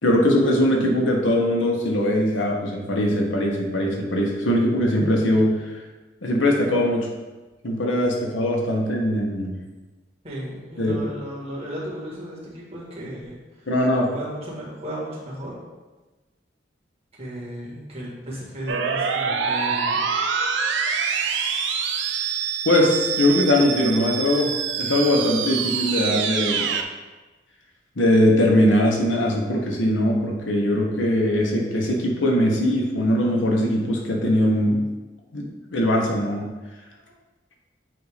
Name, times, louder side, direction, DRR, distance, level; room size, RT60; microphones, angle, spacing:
voice 1, 0.0-5.5 6.2-7.1 7.6-9.6 10.8-10.9 13.7-14.1 22.6-24.5 24.8-26.7 28.0-34.8 35.3-35.4 35.7-36.5, left 1 dB, 90° left, 0 dB, 1.2 m, -21 dB
voice 2, 10.2-13.7 14.1-15.5 17.2-20.0 37.0-37.1, right 1 dB, 35° right, -6 dB, 1.9 m, -35 dB
sound 1, 18.7-26.8, right 6 dB, 70° right, 0.5 m, -25 dB
7.8 x 2.7 x 5.0 m, 1.2 s
head